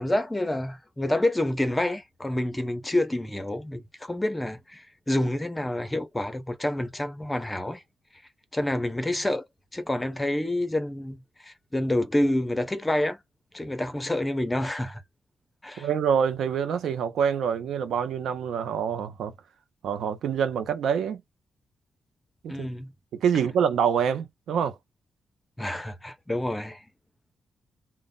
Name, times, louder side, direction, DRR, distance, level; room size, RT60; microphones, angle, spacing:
voice 1, 0.0-7.8 8.5-9.5 9.7-13.2 13.5-15.0 15.6-15.9 22.5-22.9 25.6-26.8, left 1 dB, 15° left, 0.6 m, -28 dB
voice 2, 15.8-19.3 19.8-21.2 22.4-22.7 23.1-24.8, right 7 dB, 90° right, 0.5 m, -26 dB
2.1 x 2.0 x 3.6 m
cardioid pair, 95°, 0 cm